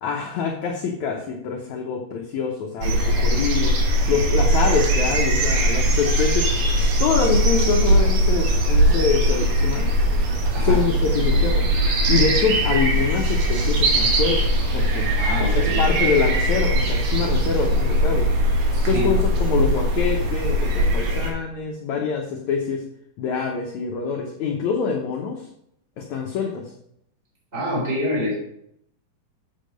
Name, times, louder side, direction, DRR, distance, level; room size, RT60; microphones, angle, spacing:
voice 1, 0.0-3.7 4.1-6.5 7.0-9.8 10.6-11.7 12.1-15.1 15.4-18.3 18.9-22.8 23.2-25.4 26.0-26.6, left 6 dB, 70° left, 0 dB, 1.9 m, -25 dB
sound 1, 2.8-21.3, right 1 dB, 55° right, 2.3 m, -20 dB
voice 2, 15.2-15.8 18.7-19.2 27.5-28.3, left 1 dB, 15° right, -4 dB, 3.8 m, -26 dB
7.5 x 7.5 x 5.1 m, 0.73 s
omnidirectional pair, 4.3 m